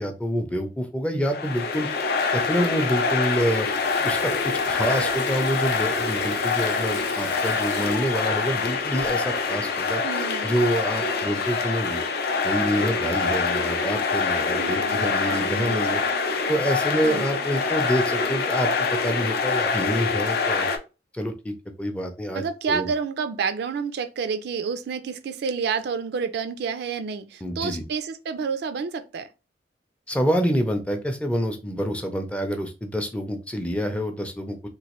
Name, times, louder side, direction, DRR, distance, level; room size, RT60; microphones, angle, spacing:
voice 1, 0.0-1.9 2.3-3.7 4.0-10.0 10.4-12.0 12.4-16.0 16.5-18.7 19.0-20.7 21.1-22.9 27.4-27.8 30.1-34.6, equal, 5° left, 0.4 m, -27 dB
sound 1, 1.3-20.8, left 4 dB, 60° left, 0.5 m, -25 dB
Water tap faucet / Sink (filling or washing), 2.4-9.2, left 4 dB, 85° left, 0.8 m, -43 dB
voice 2, 10.0-10.6 14.6-16.2 17.0-17.2 22.3-29.3, right 5 dB, 65° right, 0.3 m, -29 dB
3.0 x 2.5 x 2.9 m
head